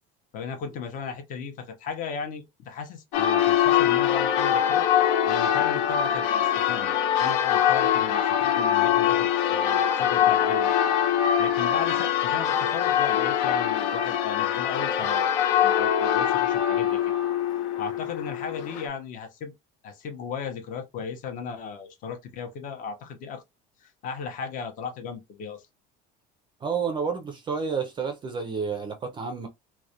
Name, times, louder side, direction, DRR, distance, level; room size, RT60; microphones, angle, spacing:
voice 1, 0.3-4.9 5.3-10.8 11.4-17.0 17.8-19.5 19.8-23.4 23.8-25.6, left 6 dB, 40° left, 0.6 m, -36 dB
Church bell, 3.1-18.9, left 10 dB, 85° left, 0.5 m, -23 dB
voice 2, 26.6-29.5, right 5 dB, 25° right, 0.4 m, -30 dB
2.3 x 2.1 x 2.7 m
cardioid pair, 145°, 21 cm